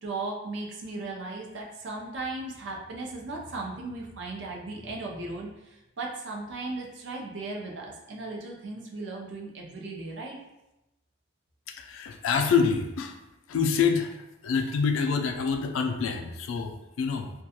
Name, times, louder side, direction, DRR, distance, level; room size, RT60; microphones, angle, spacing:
voice 1, 0.0-10.4, right 2 dB, 60° right, -1 dB, 0.5 m, -37 dB
voice 2, 11.7-13.2 13.5-14.2 14.4-17.3, left 5 dB, 80° left, 6 dB, 0.3 m, -26 dB
2.2 x 2.2 x 2.8 m, 0.94 s
head